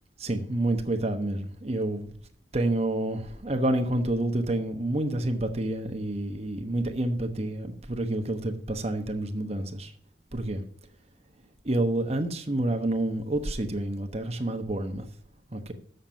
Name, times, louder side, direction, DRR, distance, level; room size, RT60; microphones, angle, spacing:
voice 1, 0.2-2.1 2.5-9.9 10.3-10.6 11.6-15.1 15.5-15.7, right 1 dB, 35° right, 1.1 m, -28 dB
7.4 x 6.6 x 7.3 m
head